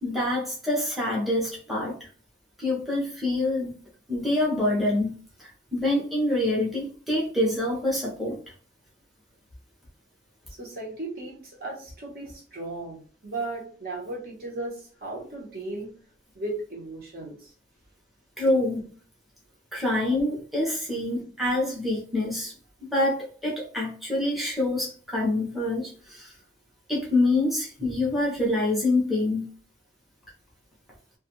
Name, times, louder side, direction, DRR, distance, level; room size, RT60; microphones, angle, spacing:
voice 1, 0.0-2.0 2.6-3.8 4.1-8.4 18.4-18.8 19.7-22.5 22.8-26.3 26.9-29.5, left 1 dB, ahead, -4 dB, 0.7 m, -26 dB
voice 2, 10.5-15.9 16.3-17.5 20.9-21.0, right 2 dB, 55° right, -3 dB, 1.0 m, -36 dB
2.4 x 2.3 x 2.9 m, 0.42 s
head